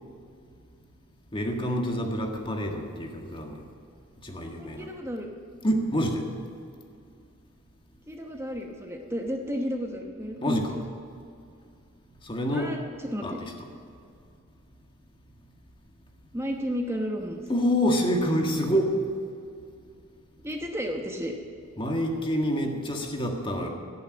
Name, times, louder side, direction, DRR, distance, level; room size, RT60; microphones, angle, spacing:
voice 1, 1.3-3.6 4.2-4.9 5.6-6.2 10.4-10.8 12.2-12.7 13.2-13.5 17.5-19.0 21.8-23.7, equal, 25° left, 2 dB, 1.7 m, -27 dB
voice 2, 4.6-5.3 8.1-10.6 12.5-13.4 16.3-17.4 20.4-21.3, equal, 15° right, 2 dB, 1.0 m, -32 dB
16.5 x 7.0 x 8.7 m, 2.4 s
head